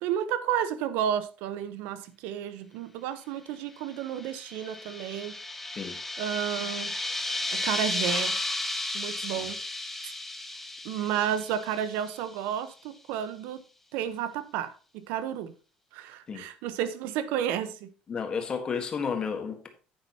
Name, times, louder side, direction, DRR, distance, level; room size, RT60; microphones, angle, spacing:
voice 1, 0.0-5.4 6.2-6.9 7.5-8.4 8.9-9.6 10.0-10.1 10.8-13.6 13.9-15.5 15.9-17.9, right 10 dB, 85° right, 1.1 m, -31 dB
sound 1, 4.0-12.3, left 2 dB, 5° left, 0.9 m, -34 dB
voice 2, 9.2-9.5 11.0-11.1 16.3-16.4 18.1-19.7, left 6 dB, 25° left, 1.6 m, -32 dB
10.0 x 8.8 x 3.0 m
cardioid pair, 165°, 3 cm